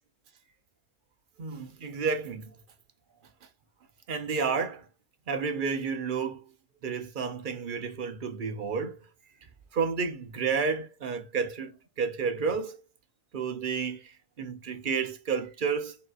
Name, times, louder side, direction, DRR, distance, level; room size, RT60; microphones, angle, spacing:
voice 1, 1.4-2.5 4.1-4.9 5.3-6.4 6.8-9.0 9.7-12.8 13.3-16.0, right 5 dB, 50° right, 0.6 m, -31 dB
5.4 x 2.6 x 2.4 m
omnidirectional pair, 1.5 m